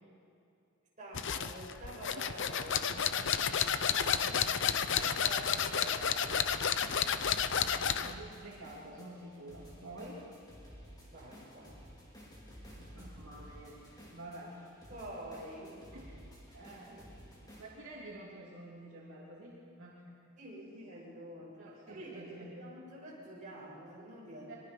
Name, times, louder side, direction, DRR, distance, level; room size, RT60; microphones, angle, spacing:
voice 1, 1.0-3.1 4.9-6.5 11.1-11.8 14.9-15.8 16.6-17.0 17.3-17.4 20.4-24.6, right 1 dB, 35° right, -5 dB, 6.9 m, -47 dB
sound 1, 1.1-8.2, left 7 dB, 55° left, 0.8 m, -31 dB
voice 2, 3.8-4.5 7.4-10.2 12.8-13.8 14.1-14.5 14.9-15.0 15.9-16.0 16.5-16.9 17.6-20.0 21.6-22.5 24.5-24.6, right 1 dB, 65° right, -5 dB, 3.2 m, -49 dB
sound 2, 4.4-17.6, equal, 20° left, 5.0 m, -54 dB
24.0 x 22.5 x 5.8 m, 2.6 s
head